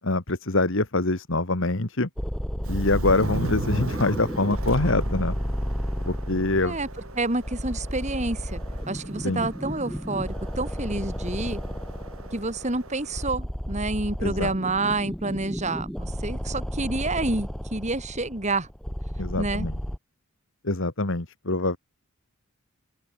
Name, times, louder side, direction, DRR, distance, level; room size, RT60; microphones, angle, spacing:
voice 1, 0.0-2.1 2.7-5.4 6.1-6.8 9.2-9.5 14.2-14.5 19.2-19.8 20.6-21.8, left 2 dB, 60° left, 2.0 m, -25 dB
sound 1, 2.2-20.0, equal, ahead, 1.2 m, -33 dB
Subway metro underground, 2.6-13.3, right 1 dB, 70° right, 4.1 m, -37 dB
voice 2, 7.1-8.6 8.9-11.6 12.3-18.7 19.4-19.7, right 2 dB, 30° right, 3.2 m, -28 dB
open air
head